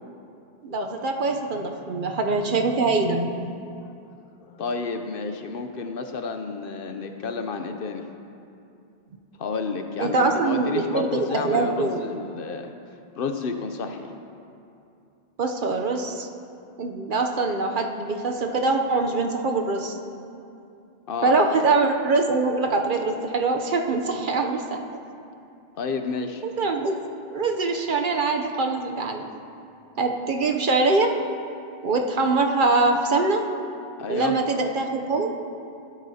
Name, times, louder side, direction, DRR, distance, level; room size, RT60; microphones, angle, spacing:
voice 1, 0.6-3.6 10.0-12.0 15.4-16.3 16.8-19.9 21.2-24.8 26.4-27.0 27.3-29.3 30.0-31.1 31.8-33.4 34.1-35.3, right 3 dB, 55° right, 4 dB, 0.7 m, -23 dB
voice 2, 4.4-8.1 9.4-12.7 13.1-14.1 21.1-21.3 25.8-26.4 34.0-34.4, left 4 dB, 60° left, 6 dB, 0.8 m, -30 dB
16.0 x 8.3 x 2.7 m, 2.6 s
omnidirectional pair, 1.1 m